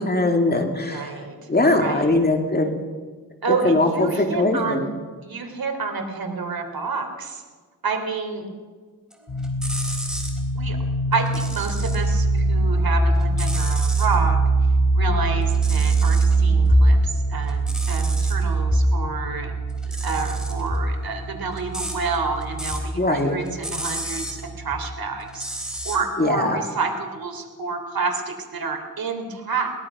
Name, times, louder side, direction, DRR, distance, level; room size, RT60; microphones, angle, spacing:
voice 1, 0.0-1.2 1.5-2.7 3.5-4.9 22.9-23.4 26.2-26.6, left 2 dB, 25° left, 4 dB, 2.4 m, -21 dB
voice 2, 0.9-1.3 1.8-2.2 3.4-4.9 5.2-7.4 7.8-8.5 10.5-10.8 11.1-14.4 14.9-19.5 20.0-25.5 25.8-29.7, right 4 dB, 65° right, 4 dB, 3.3 m, -29 dB
sound 1, 9.1-10.4 11.1-12.1 12.5-14.1 15.4-16.4 16.8-18.4 19.7-22.9 23.2-24.4 25.2-26.0, right 1 dB, ahead, 3.8 m, -34 dB
sound 2, 9.3-24.7, right 2 dB, 50° left, 3.7 m, -22 dB
22.5 x 19.0 x 6.1 m, 1.5 s
wide cardioid pair, 115°, 38 cm